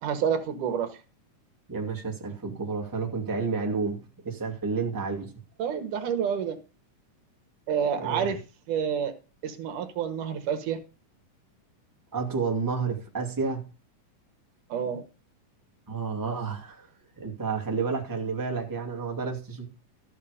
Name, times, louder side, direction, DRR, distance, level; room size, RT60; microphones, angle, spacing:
voice 1, 0.0-1.0 5.6-6.6 7.7-8.4 8.7-9.2 9.4-10.8 14.7-15.0, right 7 dB, 70° right, 2.7 m, -28 dB
voice 2, 1.7-5.3 8.0-8.4 12.1-13.7 15.9-16.9 17.2-19.7, right 4 dB, 5° right, 1.9 m, -30 dB
13.5 x 6.7 x 5.0 m
omnidirectional pair, 3.8 m